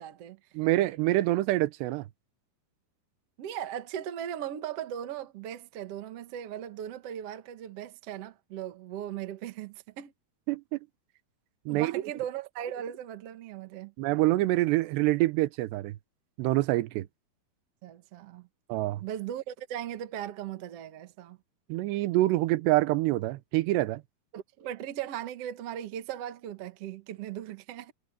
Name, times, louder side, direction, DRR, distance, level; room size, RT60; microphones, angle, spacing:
voice 1, 0.0-0.4 3.4-10.1 11.7-13.9 17.8-18.5 19.0-21.4 24.3-27.9, right 10 dB, 60° right, 1.6 m, -38 dB
voice 2, 0.5-2.0 10.5-10.8 11.7-11.9 14.0-16.0 16.4-17.1 18.7-19.0 21.7-24.0, right 17 dB, 85° right, 3.0 m, -26 dB
omnidirectional pair, 4.8 m